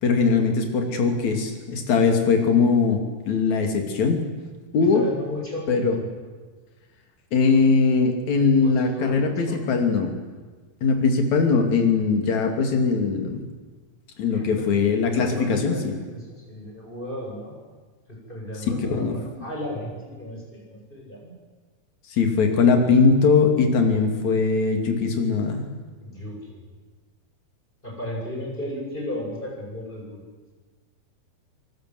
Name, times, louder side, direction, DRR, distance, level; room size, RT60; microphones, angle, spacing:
voice 1, 0.0-4.2 4.7-5.0 5.7-6.0 7.3-10.2 10.8-13.5 14.2-15.9 18.9-19.2 22.2-25.6, left 4 dB, 55° left, 4 dB, 3.9 m, -20 dB
voice 2, 4.8-6.1 8.6-9.8 14.3-14.7 15.1-17.6 18.1-21.3 26.0-26.6 27.8-30.2, left 1 dB, 10° left, -2 dB, 8.0 m, -35 dB
28.0 x 20.0 x 7.9 m, 1.4 s
omnidirectional pair, 4.2 m